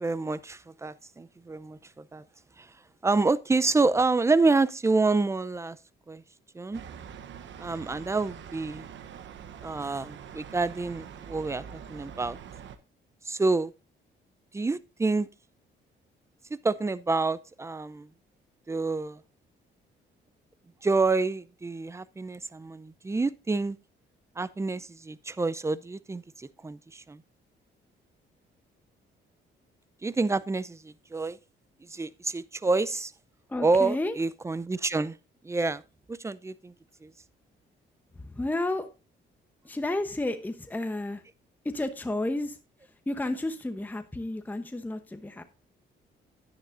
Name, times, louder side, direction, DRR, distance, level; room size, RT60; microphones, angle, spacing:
voice 1, 0.0-2.2 2.6-2.7 3.0-5.8 6.1-6.2 6.5-6.8 7.6-8.9 9.6-12.4 13.2-13.7 14.5-15.3 16.5-18.1 18.7-19.2 20.8-23.8 24.4-27.2 30.0-31.4 31.8-33.1 33.6-35.2 35.4-35.8 36.1-36.7 37.0-37.1, right 3 dB, 15° right, 0.5 m, -28 dB
sound 1, 6.7-12.8, right 8 dB, 70° right, 1.0 m, -44 dB
voice 2, 33.5-34.2 38.1-38.9 39.6-41.2 41.7-42.6 43.1-45.4, left 2 dB, 10° left, 0.9 m, -31 dB
11.0 x 9.9 x 2.6 m
cardioid pair, 90°, 20 cm